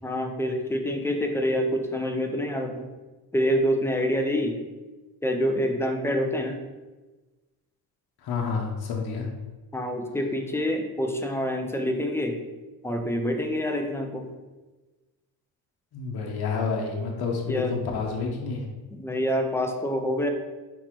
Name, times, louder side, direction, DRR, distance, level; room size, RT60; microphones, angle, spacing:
voice 1, 0.0-2.9 3.3-4.6 5.2-6.6 9.7-12.4 12.8-14.3 17.5-17.8 18.9-20.3, equal, 5° left, 4 dB, 0.4 m, -26 dB
voice 2, 8.2-9.3 15.9-18.6, left 5 dB, 55° left, 0 dB, 1.0 m, -29 dB
4.3 x 4.0 x 3.0 m, 1.2 s
cardioid pair, 100°, 46 cm